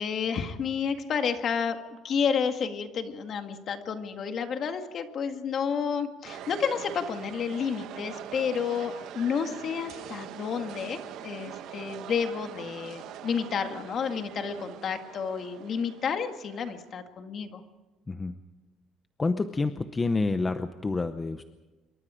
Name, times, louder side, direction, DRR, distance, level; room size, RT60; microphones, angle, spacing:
voice 1, 0.0-1.8 2.0-17.6, left 6 dB, 35° left, 6 dB, 1.8 m, -30 dB
sound 1, 6.2-16.9, right 10 dB, 60° right, 1.3 m, -43 dB
voice 2, 19.2-21.4, left 3 dB, 15° left, 9 dB, 0.7 m, -28 dB
27.0 x 23.5 x 5.0 m, 1.2 s
cardioid pair, 165°, 0 cm